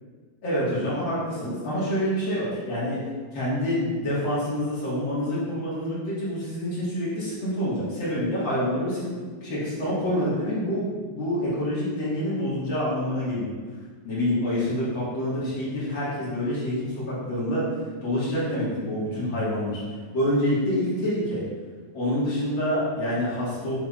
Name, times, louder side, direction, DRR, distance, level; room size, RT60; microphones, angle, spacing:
voice 1, 0.4-3.0 3.3-13.5 14.0-17.7 18.0-19.8 20.1-21.4 21.9-23.8, equal, 55° left, -8 dB, 1.3 m, -27 dB
6.8 x 6.1 x 2.4 m, 1.5 s
omnidirectional pair, 4.7 m